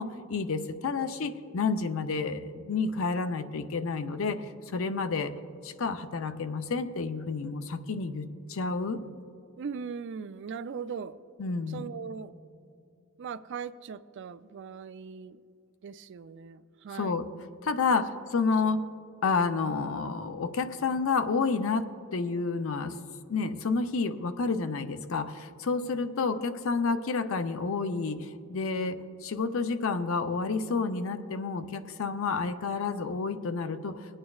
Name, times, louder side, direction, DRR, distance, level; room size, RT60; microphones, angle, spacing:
voice 1, 0.0-5.3 5.6-9.0 11.4-11.9 16.9-17.2 17.6-18.9 19.2-23.0 23.3-34.2, left 4 dB, 70° left, 10 dB, 0.5 m, -30 dB
voice 2, 9.6-11.2 11.7-12.3 13.2-15.4 15.8-17.1 18.6-18.8, right 6 dB, 60° right, 13 dB, 0.4 m, -39 dB
22.5 x 8.8 x 2.4 m, 2.6 s
head